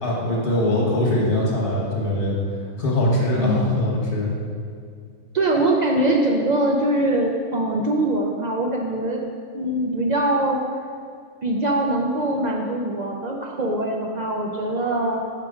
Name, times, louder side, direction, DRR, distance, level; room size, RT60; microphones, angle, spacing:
voice 1, 0.0-2.3 2.8-4.3, left 1 dB, 50° left, -4 dB, 1.4 m, -22 dB
voice 2, 3.3-3.8 5.3-9.2 9.5-10.6 11.4-15.2, right 1 dB, 60° right, 0 dB, 0.4 m, -22 dB
5.6 x 5.0 x 4.9 m, 2.2 s
omnidirectional pair, 1.3 m